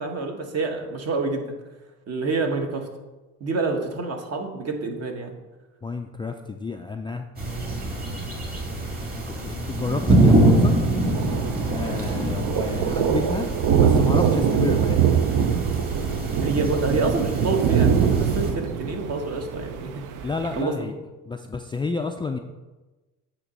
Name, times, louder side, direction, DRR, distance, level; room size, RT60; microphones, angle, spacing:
voice 1, 0.0-1.4 2.1-2.9 3.4-5.3 16.4-20.0 20.6-20.8, right 3 dB, 45° right, 3 dB, 1.2 m, -27 dB
voice 2, 5.8-7.3 9.1-10.8 11.7-13.5 13.8-15.0 20.2-20.9 21.3-22.4, left 4 dB, 15° left, 4 dB, 0.3 m, -30 dB
sound 1, 7.4-18.5, right 1 dB, 25° right, 1.8 m, -25 dB
Thunder, 10.6-20.6, right 7 dB, 65° right, 0.6 m, -23 dB
8.4 x 3.0 x 5.4 m, 1.2 s
supercardioid pair, 90°, 34 cm